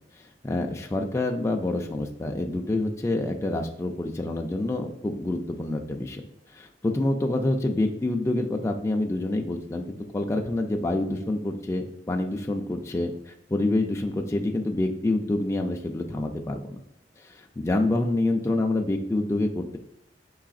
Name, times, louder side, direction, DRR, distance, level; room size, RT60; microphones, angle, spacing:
voice 1, 0.2-6.2 6.5-16.8 17.2-19.8, left 2 dB, 15° left, 2 dB, 0.3 m, -27 dB
4.7 x 3.3 x 2.4 m, 0.81 s
head